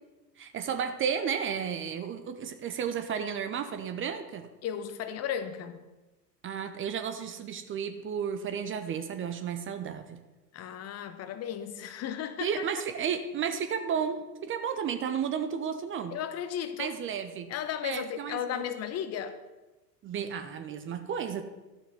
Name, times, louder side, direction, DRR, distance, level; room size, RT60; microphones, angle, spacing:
voice 1, 0.4-4.5 6.4-10.2 12.4-16.1 16.8-17.5 17.8-18.6 20.0-21.4, right 7 dB, 25° right, 8 dB, 0.7 m, -33 dB
voice 2, 4.6-5.8 10.5-12.6 16.1-17.0 17.5-19.4, left 9 dB, 30° left, 10 dB, 0.8 m, -35 dB
12.0 x 6.0 x 6.0 m, 1.1 s
figure-of-eight pair, 85°, 50 cm